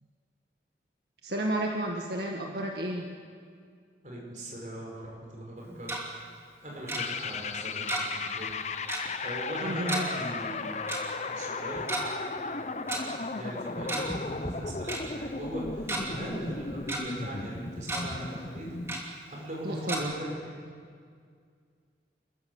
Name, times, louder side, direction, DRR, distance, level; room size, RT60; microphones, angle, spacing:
voice 1, 1.2-3.1 9.6-10.1 19.6-20.1, right 1 dB, 65° right, 0 dB, 1.8 m, -31 dB
voice 2, 4.0-5.9 6.6-8.5 9.2-10.8 11.3-12.0 12.6-18.7 19.3-20.4, equal, 45° right, -3 dB, 5.4 m, -40 dB
Tick-tock, 5.6-6.0 6.9-7.0 7.9-8.2 8.5-8.6 8.9-9.1 9.9-10.0 10.9-11.0 11.8-12.0 12.9-13.0 13.7-14.2 14.4-14.5 14.9-15.0 15.6-16.0 16.5-17.0 17.4-17.5 17.8-18.0 18.9-19.0 19.9-20.0, right 2 dB, 15° right, 2.7 m, -32 dB
sound 1, 7.0-19.0, left 4 dB, 40° left, 0.7 m, -36 dB
29.5 x 14.5 x 7.2 m, 2.1 s
head